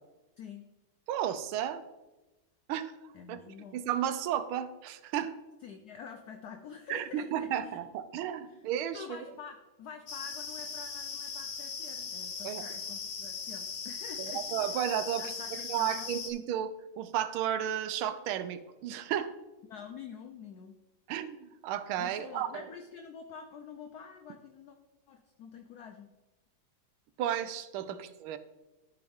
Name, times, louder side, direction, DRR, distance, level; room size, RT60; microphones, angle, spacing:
voice 1, 0.4-0.7 3.1-3.8 5.6-7.5 8.5-8.7 8.9-14.7 15.2-16.1 19.7-20.8 22.0-24.8 25.1-26.1 27.9-28.0, left 6 dB, 80° left, 5 dB, 0.8 m, -47 dB
voice 2, 1.1-1.8 2.7-2.9 3.3-3.4 3.7-5.3 6.9-9.2 12.4-12.6 14.2-15.2 15.5-19.3 21.1-22.6 27.2-28.4, right 10 dB, 80° right, 11 dB, 1.4 m, -33 dB
sound 1, 10.1-16.3, left 5 dB, 55° left, 0.9 m, -39 dB
12.5 x 4.7 x 3.5 m, 1.1 s
omnidirectional pair, 2.3 m